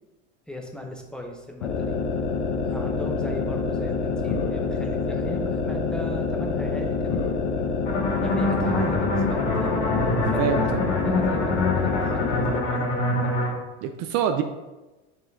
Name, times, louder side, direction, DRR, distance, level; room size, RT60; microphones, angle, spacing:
voice 1, 0.5-2.0 2.6-7.8 8.2-13.3, equal, ahead, 1 dB, 0.7 m, -37 dB
sound 1, 1.6-12.7, left 4 dB, 85° left, 0.9 m, -27 dB
sound 2, 7.9-13.5, left 2 dB, 50° left, 2.0 m, -26 dB
voice 2, 10.4-10.9 13.8-14.4, right 8 dB, 50° right, 7 dB, 0.5 m, -25 dB
6.5 x 4.3 x 3.6 m, 1.1 s
supercardioid pair, 120°, 34 cm